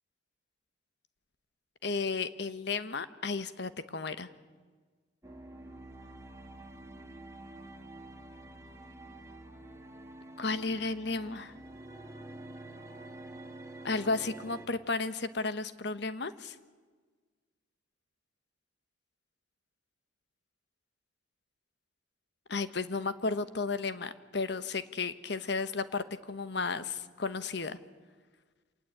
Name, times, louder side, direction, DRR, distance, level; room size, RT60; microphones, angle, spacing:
voice 1, 1.8-4.3 10.4-11.5 13.8-16.5 22.5-27.8, left 4 dB, 60° left, 12 dB, 1.2 m, -33 dB
sound 1, 5.2-14.7, right 1 dB, 15° right, 2.0 m, -48 dB
26.5 x 19.0 x 8.6 m, 1.4 s
head